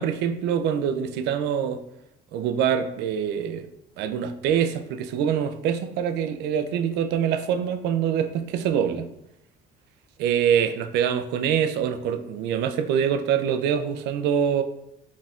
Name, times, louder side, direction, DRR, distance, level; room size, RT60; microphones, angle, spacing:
voice 1, 0.0-1.8 2.3-3.7 4.0-9.1 10.2-14.6, right 8 dB, 85° right, 8 dB, 0.4 m, -24 dB
4.0 x 4.0 x 2.4 m, 0.80 s
cardioid pair, 110°, 17 cm